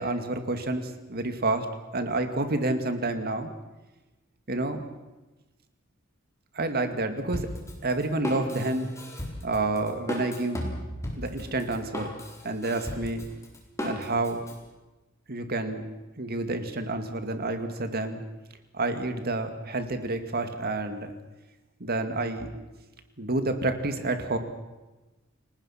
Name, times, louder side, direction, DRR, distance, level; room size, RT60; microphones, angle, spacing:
voice 1, 0.0-3.5 4.5-4.8 6.5-7.5 7.8-8.9 9.4-10.7 11.2-12.2 12.4-13.3 13.8-14.4 15.3-15.9 16.2-18.2 18.7-21.1 21.8-22.5 23.2-24.4, right 2 dB, 50° right, 8 dB, 2.2 m, -29 dB
Drum kit, 7.3-14.5, left 1 dB, 15° left, 4.1 m, -35 dB
29.5 x 19.0 x 5.9 m, 1.1 s
head